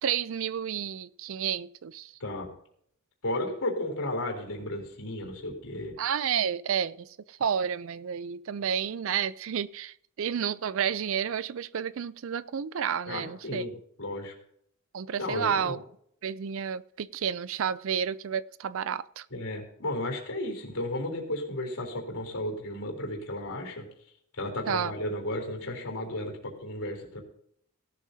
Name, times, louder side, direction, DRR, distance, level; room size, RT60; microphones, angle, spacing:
voice 1, 0.0-2.1 6.0-13.6 14.9-15.8 16.2-19.3 24.7-24.9, right 8 dB, 60° right, 0.4 m, -31 dB
voice 2, 3.2-5.9 13.0-14.3 15.2-15.8 19.3-23.8 24.3-27.2, left 1 dB, 70° left, 3.5 m, -34 dB
17.5 x 12.5 x 2.8 m
head